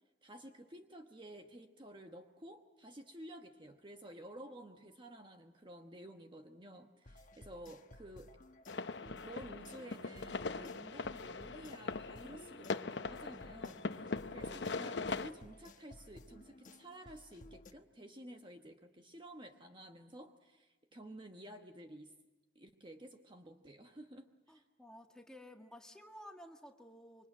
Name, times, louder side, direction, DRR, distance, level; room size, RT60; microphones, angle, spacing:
voice 1, 0.2-8.3 9.1-22.1 22.5-24.6, right 1 dB, 25° right, 5 dB, 1.1 m, -52 dB
sound 1, 7.0-17.7, left 1 dB, 45° left, 1.1 m, -57 dB
sound 2, 8.7-15.3, left 4 dB, 70° left, 0.9 m, -41 dB
voice 2, 24.5-27.3, equal, 5° left, 3 dB, 1.8 m, -54 dB
26.5 x 24.5 x 9.0 m, 1.1 s
head